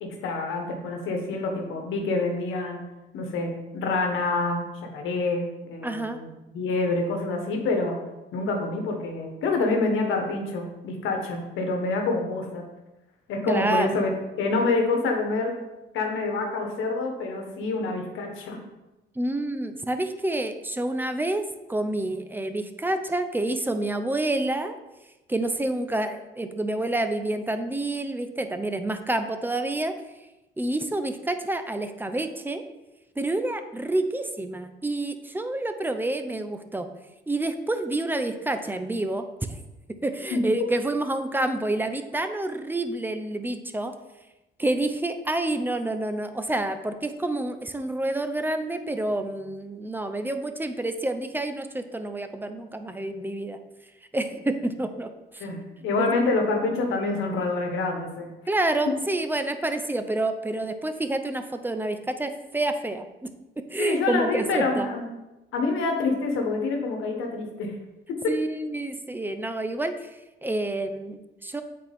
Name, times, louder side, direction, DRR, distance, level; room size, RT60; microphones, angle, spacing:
voice 1, 0.0-2.8 3.1-8.0 8.3-12.6 13.3-14.1 14.4-15.6 15.9-18.6 40.3-40.4 55.4-55.6 55.8-58.3 58.9-59.0 63.8-65.0 65.5-67.7 68.1-68.3, left 3 dB, 85° left, 2 dB, 1.3 m, -27 dB
voice 2, 5.8-6.2 13.5-13.9 19.2-24.7 25.3-30.0 30.6-32.6 33.2-36.9 37.3-39.6 40.0-43.9 44.6-53.6 54.1-55.5 56.0-56.1 58.5-63.3 63.7-64.9 68.3-70.1 70.4-71.6, right 2 dB, 10° right, 8 dB, 0.6 m, -28 dB
8.0 x 4.3 x 3.5 m, 1.0 s
cardioid pair, 90°, 20 cm